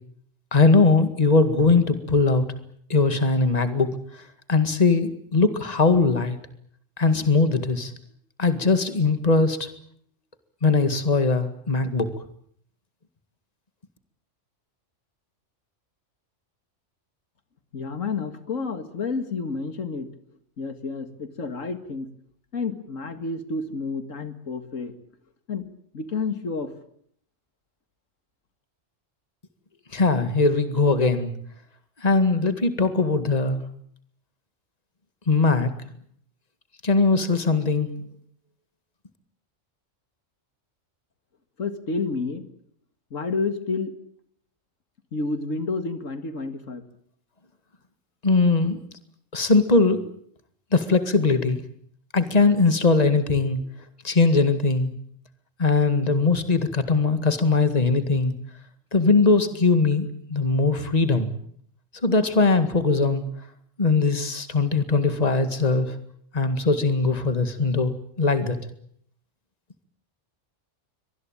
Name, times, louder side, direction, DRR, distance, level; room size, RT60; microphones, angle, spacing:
voice 1, 0.5-2.5 2.9-4.2 4.5-6.4 7.0-7.9 8.4-9.7 10.6-12.1 29.9-31.3 32.0-33.6 35.3-35.7 36.8-37.9 48.2-48.8 49.3-50.0 50.7-51.6 52.1-53.6 54.0-54.9 55.6-58.3 58.9-61.3 62.0-63.2 63.8-65.9 66.3-67.9 68.2-68.6, left 3 dB, 30° left, 10 dB, 2.1 m, -20 dB
voice 2, 17.7-20.1 20.6-22.1 22.5-24.9 25.5-25.7 25.9-26.7 41.6-42.5 43.1-43.9 45.1-46.8, left 4 dB, 90° left, 10 dB, 2.3 m, -30 dB
24.0 x 19.5 x 9.0 m, 0.64 s
omnidirectional pair, 1.3 m